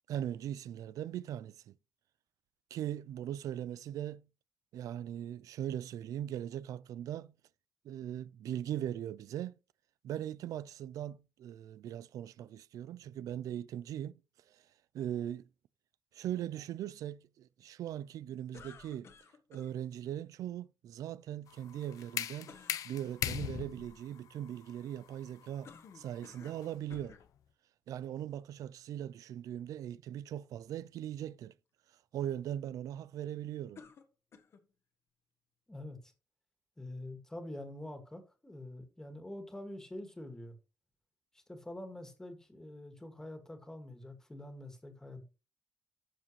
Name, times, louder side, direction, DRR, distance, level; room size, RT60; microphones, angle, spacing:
voice 1, 0.1-1.7 2.7-4.2 4.7-7.3 7.8-9.5 10.0-14.2 14.5-14.6 14.9-15.5 16.1-19.1 19.5-27.1 27.9-31.5 32.1-33.8, right 11 dB, 85° right, 0.4 m, -40 dB
sound 1, 18.5-19.7 22.4-22.9 25.6-26.6 26.9-27.3 28.1-28.2 33.8-34.7, left 6 dB, 50° left, 1.4 m, -54 dB
sound 2, 21.5-27.2, left 10 dB, 80° left, 0.8 m, -41 dB
voice 2, 35.7-36.1 36.8-40.6 41.3-45.2, left 1 dB, 10° left, 2.1 m, -46 dB
12.5 x 7.4 x 3.2 m
wide cardioid pair, 165°, 6 cm